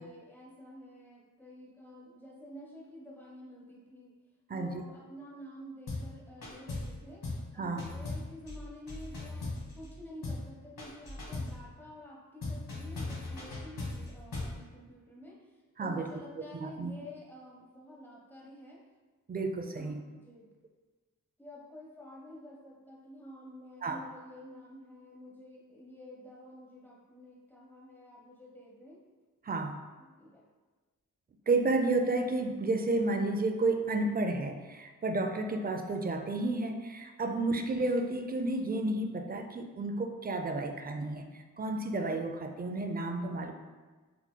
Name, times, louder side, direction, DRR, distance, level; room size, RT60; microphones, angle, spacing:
voice 1, 0.0-4.1 4.5-7.2 7.5-9.5 9.7-15.4 15.8-18.8 19.7-20.5 21.4-29.0 30.0-30.4 37.3-37.5, equal, 5° left, -3 dB, 1.0 m, -50 dB
voice 2, 4.5-4.8 7.6-7.8 15.8-16.1 16.5-16.9 19.3-20.0 23.8-24.0 29.4-29.8 31.5-43.5, right 2 dB, 25° right, 5 dB, 0.4 m, -31 dB
sound 1, 5.9-6.1 6.4-7.0 7.2-7.5 7.8-9.9 10.2-10.5 10.8-11.6 12.4-14.6, left 2 dB, 65° left, 1.1 m, -38 dB
4.2 x 2.9 x 2.2 m, 1.3 s
cardioid pair, 50°, 36 cm